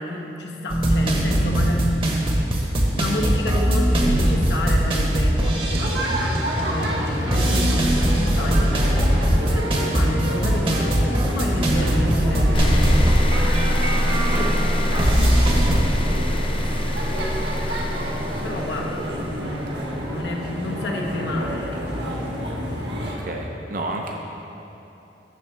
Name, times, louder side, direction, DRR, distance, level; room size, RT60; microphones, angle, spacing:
voice 1, 0.0-1.9 2.2-6.0 6.7-7.9 8.4-15.4 18.4-22.0 22.7-22.9, left 1 dB, 75° left, 0 dB, 1.2 m, -31 dB
sound 1, 0.7-15.8, right 1 dB, 30° right, 1.1 m, -21 dB
sound 2, 5.7-23.2, equal, 75° right, 1.3 m, -29 dB
sound 3, 12.5-19.7, equal, 30° left, 0.6 m, -24 dB
voice 2, 23.2-24.1, right 2 dB, 50° right, 1 dB, 0.7 m, -30 dB
12.0 x 4.1 x 7.2 m, 3.0 s
head